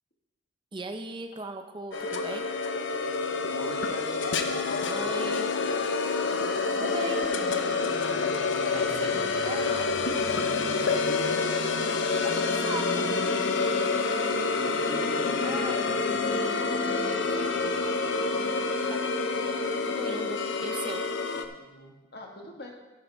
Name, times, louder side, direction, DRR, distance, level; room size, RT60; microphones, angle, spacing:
voice 1, 0.7-2.5 4.8-5.5 6.8-7.3 8.6-9.2 9.4-9.9 12.3-13.0 15.4-15.8 16.4-16.8 17.4-17.6 18.9-21.0, right 2 dB, 25° right, 6 dB, 0.5 m, -38 dB
sound 1, 1.9-21.4, left 4 dB, 80° left, 0.7 m, -28 dB
voice 2, 3.5-5.4 8.7-9.2 10.4-11.4 14.3-16.0 21.5-22.7, left 2 dB, 55° left, 1 dB, 1.7 m, -42 dB
Wind instrument woodwind instrument, 11.7-17.2, equal, 65° right, 1.4 m, -45 dB
11.0 x 10.5 x 3.5 m, 1.2 s
head